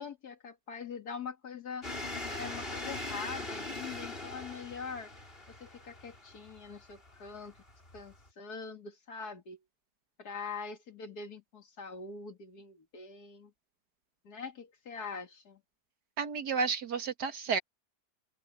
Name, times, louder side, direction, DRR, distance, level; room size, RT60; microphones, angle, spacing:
voice 1, 0.0-1.9 2.2-5.1 5.5-7.5 7.9-9.6 10.2-13.5 14.2-15.6, left 5 dB, 65° left, 2.6 m, -43 dB
sound 1, 1.8-8.3, left 2 dB, 35° left, 4.3 m, -42 dB
voice 2, 16.2-17.6, right 5 dB, 75° right, 2.2 m, -31 dB
open air
omnidirectional pair, 1.8 m